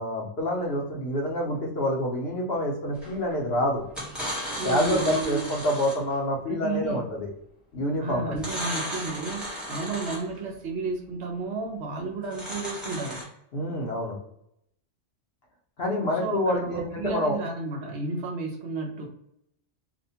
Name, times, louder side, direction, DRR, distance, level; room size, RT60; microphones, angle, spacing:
voice 1, 0.0-3.8 4.6-7.3 7.7-8.4 13.5-14.2 15.8-17.4, left 1 dB, 60° left, -1 dB, 0.9 m, -27 dB
sound 1, 3.0-3.4 3.9-6.1 8.3-10.4 12.2-13.2, equal, ahead, 0.8 m, -34 dB
voice 2, 4.6-5.5 6.5-7.0 8.0-13.2 16.1-19.1, right 4 dB, 65° right, 0 dB, 0.8 m, -32 dB
2.7 x 2.1 x 2.7 m, 0.75 s
omnidirectional pair, 1.3 m